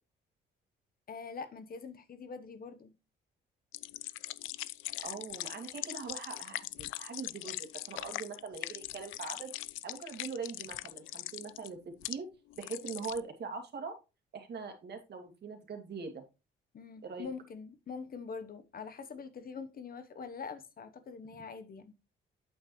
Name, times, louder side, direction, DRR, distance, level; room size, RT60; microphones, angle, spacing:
voice 1, 1.1-2.9 16.7-21.9, left 5 dB, 50° left, 1.1 m, -44 dB
sound 1, 3.7-12.2 12.5-13.2, left 17 dB, 90° left, 0.4 m, -41 dB
voice 2, 5.0-9.5 9.8-12.3 12.6-14.0 14.3-16.2 17.0-17.3, right 5 dB, 55° right, 2.3 m, -42 dB
8.6 x 6.5 x 3.2 m
cardioid pair, 90°, 20 cm